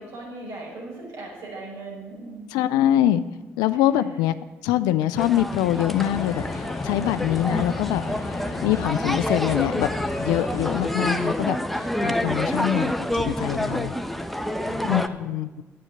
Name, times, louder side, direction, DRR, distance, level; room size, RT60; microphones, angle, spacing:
voice 1, 0.0-2.6 12.5-12.8 14.6-15.2, right 2 dB, 70° right, -3 dB, 5.3 m, -39 dB
voice 2, 2.5-3.2 3.6-4.3 4.6-8.0 8.6-9.9 10.2-13.9 14.8-15.6, left 12 dB, 80° left, 13 dB, 0.5 m, -24 dB
sound 1, 5.2-15.1, equal, ahead, 1.0 m, -28 dB
sound 2, 5.9-10.9, left 4 dB, 45° left, 1.2 m, -33 dB
10.0 x 8.6 x 7.8 m, 1.2 s
hypercardioid pair, 45°, 7 cm